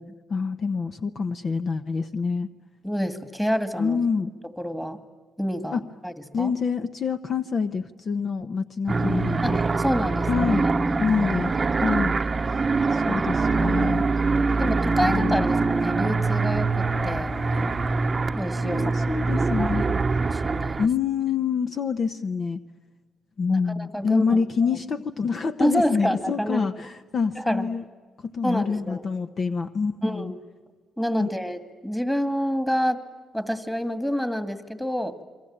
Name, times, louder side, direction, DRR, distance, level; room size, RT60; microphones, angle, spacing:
voice 1, 0.3-2.5 3.8-4.3 5.7-5.8 6.3-9.6 10.2-10.7 11.0-12.2 12.9-14.0 15.0-15.5 18.6-20.1 20.8-22.6 23.4-27.8 28.3-30.3 31.2-31.3, left 5 dB, 50° left, 10 dB, 1.0 m, -26 dB
voice 2, 2.8-4.0 4.6-5.0 5.4-6.5 9.4-10.7 11.1-11.2 14.6-17.3 18.3-20.9 23.5-24.4 25.6-26.6 27.4-27.7 28.4-29.0 30.0-30.4 31.0-33.0 33.3-35.1, equal, 5° left, 10 dB, 2.2 m, -28 dB
sound 1, 8.9-20.9, right 3 dB, 30° right, 0.9 m, -24 dB
27.5 x 23.0 x 8.8 m, 1.4 s
cardioid pair, 90°, 0 cm